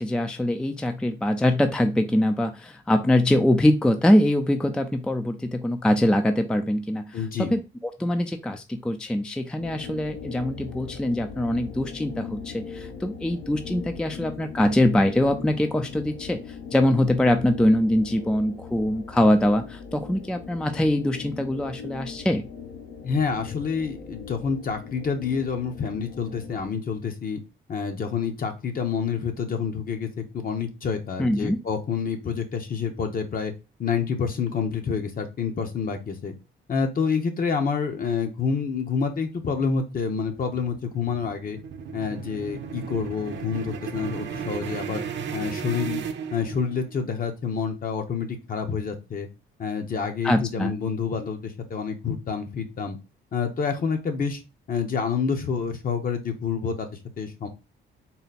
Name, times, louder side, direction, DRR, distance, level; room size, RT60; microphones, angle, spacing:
voice 1, 0.0-22.4 31.2-31.6 50.2-50.7, left 1 dB, 5° left, 7 dB, 0.4 m, -23 dB
voice 2, 7.1-7.5 23.0-27.4 27.7-33.5 33.8-36.3 36.7-41.6 41.9-45.0 45.3-46.0 46.3-49.3 49.6-53.0 53.3-54.4 54.7-57.5, left 6 dB, 45° left, 6 dB, 0.9 m, -28 dB
sound 1, 9.6-26.7, left 6 dB, 80° left, 1.2 m, -40 dB
sound 2, 39.9-46.9, right 7 dB, 65° right, 0.7 m, -34 dB
4.0 x 2.2 x 4.0 m, 0.28 s
cardioid pair, 90°, 20 cm